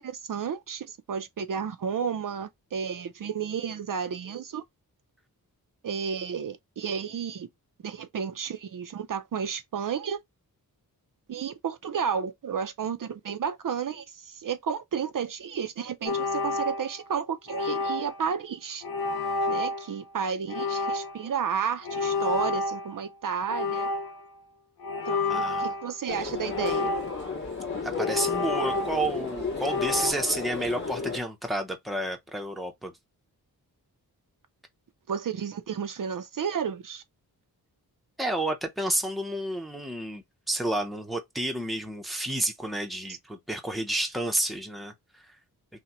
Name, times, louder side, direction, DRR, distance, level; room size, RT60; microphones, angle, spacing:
voice 1, 0.0-4.6 5.8-7.5 7.8-10.2 11.3-18.8 19.5-23.9 25.0-26.9 35.1-37.0 43.1-43.2, right 7 dB, 60° right, 0.5 m, -32 dB
sound 1, 16.1-17.1 17.5-18.3 18.8-19.9 20.5-21.3 21.8-23.1 23.5-24.3 24.8-25.9 26.5-27.4 27.9-29.2 29.6-30.1, left 3 dB, 85° left, 0.8 m, -30 dB
voice 2, 25.3-25.7 27.8-32.9 38.2-45.3, right 1 dB, ahead, 0.6 m, -30 dB
sound 2, 26.1-31.2, left 4 dB, 50° left, 1.9 m, -33 dB
5.7 x 2.1 x 2.9 m
wide cardioid pair, 160°, 38 cm